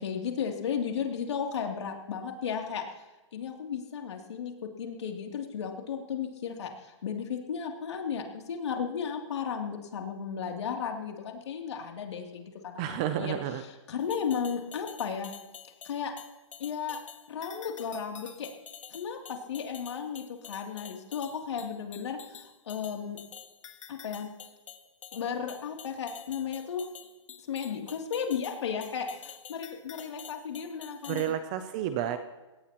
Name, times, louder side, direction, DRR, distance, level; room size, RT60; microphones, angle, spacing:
voice 1, 0.0-2.8 3.3-4.5 4.8-13.3 13.9-15.3 15.8-16.1 16.6-17.0 17.3-18.5 18.9-23.2 23.9-24.3 25.1-26.8 27.5-31.3, left 7 dB, 60° left, 2 dB, 2.8 m, -34 dB
voice 2, 12.8-13.6 31.1-32.2, right 10 dB, 15° right, 10 dB, 0.4 m, -31 dB
sound 1, 14.0-31.3, left 8 dB, 80° left, 1.6 m, -48 dB
23.0 x 17.5 x 3.0 m, 1.1 s
hypercardioid pair, 175°, 16 cm